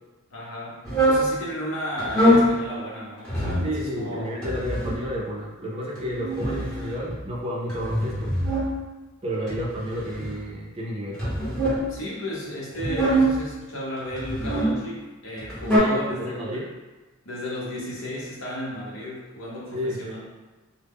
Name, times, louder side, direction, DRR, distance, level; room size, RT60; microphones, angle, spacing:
voice 1, 0.3-4.3 11.9-16.7 17.2-20.2, left 1 dB, 75° left, -5 dB, 0.7 m, -34 dB
sound 1, 0.8-1.3 2.0-2.5 3.2-3.7 4.4-5.1 5.9-7.2 7.7-8.7 9.5-10.4 11.1-11.8 12.7-13.4 14.1-14.7 15.4-15.8, equal, 5° left, 0.8 m, -23 dB
voice 2, 3.6-8.3 9.2-11.2 15.7-16.7 19.7-20.2, equal, 30° right, -4 dB, 0.5 m, -31 dB
2.1 x 2.0 x 3.4 m, 1.2 s
head